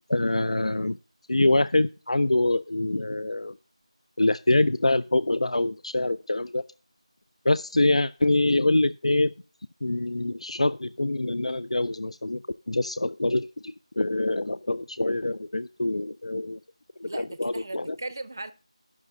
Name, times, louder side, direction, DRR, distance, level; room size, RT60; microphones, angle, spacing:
voice 1, 0.1-1.0 1.3-3.6 4.2-6.6 7.4-9.3 9.8-16.6 17.0-18.0, left 2 dB, 70° left, 0.4 m, -25 dB
voice 2, 17.0-18.5, right 2 dB, 30° right, 0.6 m, -37 dB
10.5 x 6.1 x 5.4 m
figure-of-eight pair, 175°, 3 cm